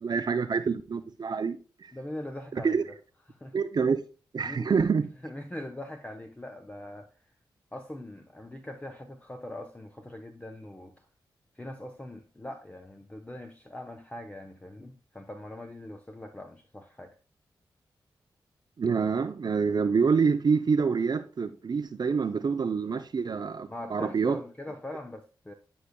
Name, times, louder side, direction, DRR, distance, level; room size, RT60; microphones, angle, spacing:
voice 1, 0.0-1.9 2.5-2.8 3.5-4.0 4.3-5.1 18.8-24.4, right 5 dB, 50° right, 0.5 m, -27 dB
voice 2, 1.9-2.9 3.3-3.5 4.4-4.7 5.2-7.1 7.7-11.0 11.5-17.1 23.7-25.5, left 1 dB, 15° left, 0.8 m, -42 dB
10.5 x 5.1 x 2.2 m
supercardioid pair, 40°, 9 cm